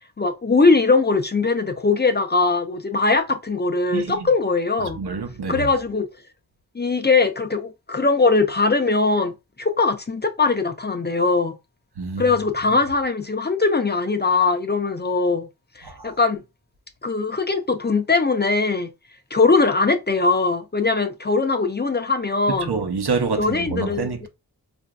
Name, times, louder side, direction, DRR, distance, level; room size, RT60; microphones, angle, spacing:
voice 1, 0.2-5.0 5.5-6.1 6.7-9.3 9.6-11.6 12.2-15.5 15.8-16.4 17.0-18.9 19.3-22.7 23.4-24.3, left 3 dB, 25° left, 0.5 m, -21 dB
voice 2, 3.9-4.3 4.9-5.7 12.0-12.4 15.8-16.1 22.6-24.3, right 4 dB, 85° right, 0.9 m, -27 dB
4.8 x 2.6 x 2.2 m
wide cardioid pair, 60°, 38 cm